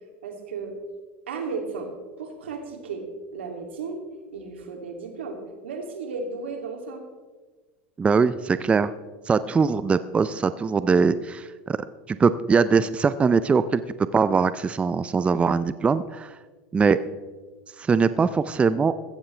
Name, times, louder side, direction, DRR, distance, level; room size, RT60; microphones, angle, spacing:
voice 1, 0.2-0.7 1.3-1.9 2.2-3.0 3.3-4.0 4.3-7.0, right 4 dB, 90° right, 3 dB, 2.7 m, -34 dB
voice 2, 8.0-8.9 9.3-11.8 12.1-13.8 14.1-16.4 16.7-17.0 17.8-18.9, right 5 dB, 20° right, 14 dB, 0.5 m, -21 dB
15.5 x 14.5 x 3.3 m, 1.4 s
hypercardioid pair, 100°, 6 cm